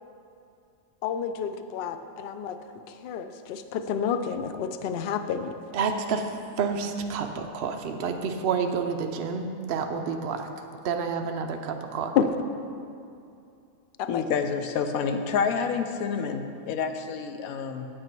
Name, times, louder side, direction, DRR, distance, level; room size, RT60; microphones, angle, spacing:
voice 1, 1.0-2.6 2.9-5.5 12.2-12.3 14.0-14.2, left 7 dB, 65° left, 9 dB, 0.6 m, -29 dB
voice 2, 5.7-6.3 6.6-10.5 10.8-12.1, right 5 dB, 60° right, 5 dB, 0.7 m, -29 dB
voice 3, 14.1-17.9, left 6 dB, 85° left, 7 dB, 1.1 m, -28 dB
8.7 x 8.5 x 4.5 m, 2.6 s
omnidirectional pair, 1.5 m